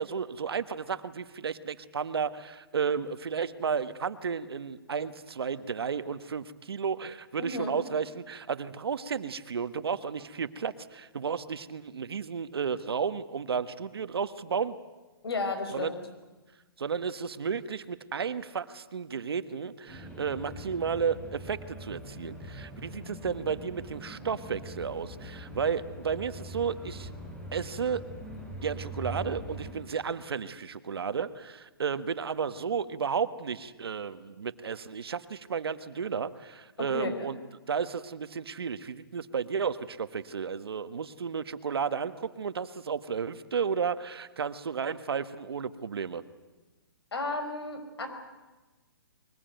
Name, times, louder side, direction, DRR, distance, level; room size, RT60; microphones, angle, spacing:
voice 1, 0.0-14.7 15.7-15.9 16.8-27.1 27.5-28.0 28.6-37.4 37.7-46.2, right 6 dB, 80° right, 12 dB, 1.4 m, -33 dB
voice 2, 7.4-7.8 15.2-16.0 36.8-37.3 47.1-48.1, left 3 dB, 85° left, 7 dB, 5.6 m, -33 dB
sound 1, 19.9-29.8, right 1 dB, 10° left, 4.1 m, -42 dB
22.5 x 20.5 x 9.2 m, 1.2 s
hypercardioid pair, 165°, 13 cm